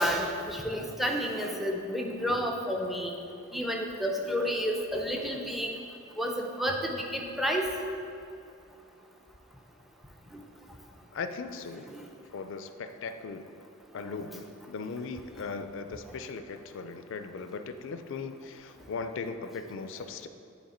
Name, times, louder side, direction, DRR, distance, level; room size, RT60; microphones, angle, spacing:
voice 1, 0.0-3.1 3.5-5.7 6.2-7.8 11.8-12.0, equal, ahead, 1 dB, 0.5 m, -30 dB
voice 2, 11.1-11.9 12.3-13.5 13.9-20.3, left 4 dB, 65° left, 9 dB, 0.4 m, -38 dB
8.8 x 3.3 x 4.3 m, 2.6 s
head